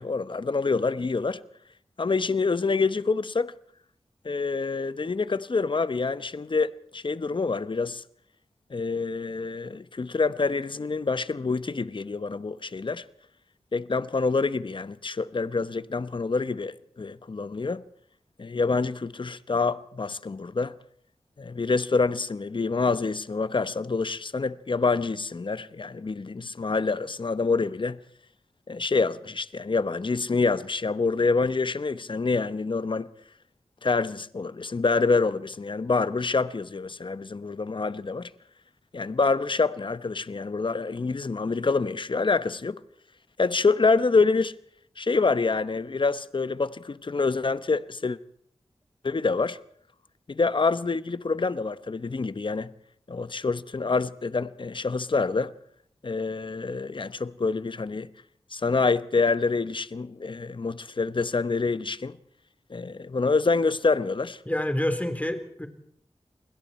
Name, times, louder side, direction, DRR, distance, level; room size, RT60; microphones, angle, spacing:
voice 1, 0.0-1.4 2.0-3.5 4.2-8.0 8.7-13.0 13.7-17.8 18.4-20.7 21.4-28.0 28.7-33.1 33.8-38.3 38.9-42.8 43.4-44.6 45.0-48.2 49.0-49.6 50.3-52.7 53.1-55.5 56.0-58.1 58.5-62.2 62.7-64.4, left 4 dB, 50° left, 1.0 m, -26 dB
voice 2, 64.5-65.7, left 1 dB, 15° left, 3.8 m, -27 dB
29.5 x 22.0 x 4.4 m
cardioid pair, 45°, 10 cm